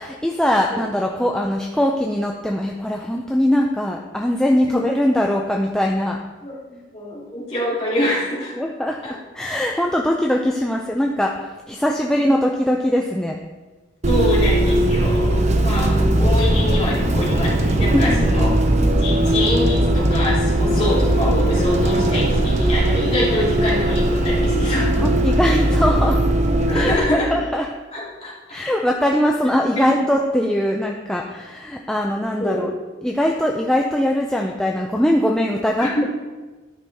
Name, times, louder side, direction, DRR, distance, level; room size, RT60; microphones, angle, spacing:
voice 1, 0.0-6.2 8.6-11.3 11.7-13.4 17.9-18.1 25.0-26.2 26.7-27.7 28.5-32.7 33.0-36.0, equal, 5° left, 0 dB, 0.4 m, -21 dB
voice 2, 6.4-8.5 9.0-9.1 14.0-18.5 19.0-25.4 26.7-27.4 27.9-28.6 29.8-30.0 32.4-32.7 35.8-36.1, left 1 dB, 30° left, -8 dB, 2.9 m, -25 dB
Bus, 14.0-27.0, right 1 dB, 35° right, 0.6 m, -18 dB
12.0 x 5.6 x 3.4 m, 1.3 s
head